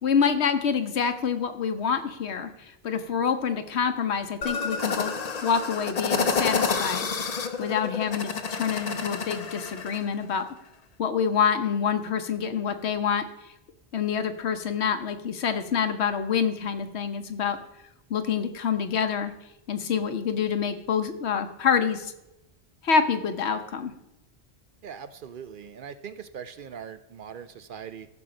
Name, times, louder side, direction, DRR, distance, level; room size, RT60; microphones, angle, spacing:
voice 1, 0.0-5.1 5.4-7.1 7.6-10.4 11.0-13.2 13.9-17.6 18.1-19.3 19.7-22.1 22.8-23.9, left 6 dB, 75° left, 9 dB, 1.2 m, -26 dB
sound 1, 4.4-10.0, left 5 dB, 40° left, 0.7 m, -29 dB
voice 2, 24.8-28.1, right 7 dB, 60° right, 12 dB, 0.7 m, -41 dB
14.5 x 6.2 x 5.1 m, 0.89 s
omnidirectional pair, 1.1 m